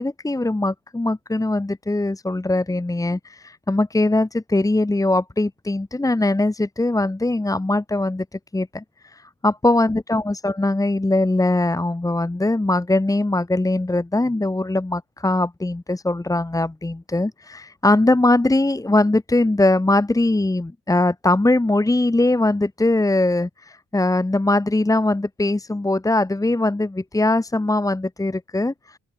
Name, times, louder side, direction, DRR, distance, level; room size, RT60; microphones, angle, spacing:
voice 1, 0.0-8.3 8.5-29.0, left 2 dB, 10° left, 1.8 m, -21 dB
open air
cardioid pair, 90°, 30 cm